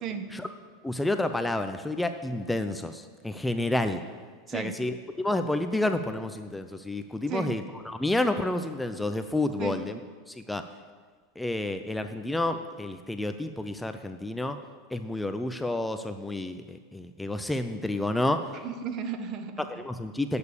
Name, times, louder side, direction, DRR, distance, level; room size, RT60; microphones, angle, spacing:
voice 1, 0.0-0.4 4.5-4.8 7.3-7.5 9.6-9.8 18.6-19.5, right 7 dB, 45° right, 9 dB, 1.1 m, -34 dB
voice 2, 0.8-4.0 4.5-10.0 10.3-10.6 11.4-14.6 14.9-18.4 19.7-20.4, left 2 dB, 5° left, 8 dB, 0.6 m, -30 dB
9.5 x 6.9 x 8.4 m, 1.5 s
hypercardioid pair, 110°, 0 cm